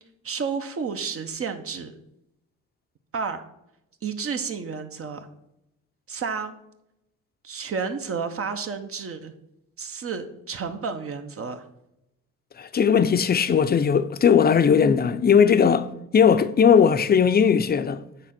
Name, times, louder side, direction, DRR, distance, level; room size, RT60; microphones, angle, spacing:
voice 1, 0.2-2.0 3.1-3.4 4.0-5.3 6.1-6.5 7.4-9.3 9.8-11.6, right 5 dB, 50° right, 1.0 m, -31 dB
voice 2, 12.6-18.0, left 7 dB, 30° left, 0.6 m, -18 dB
8.9 x 3.8 x 5.9 m
cardioid pair, 90°, 30 cm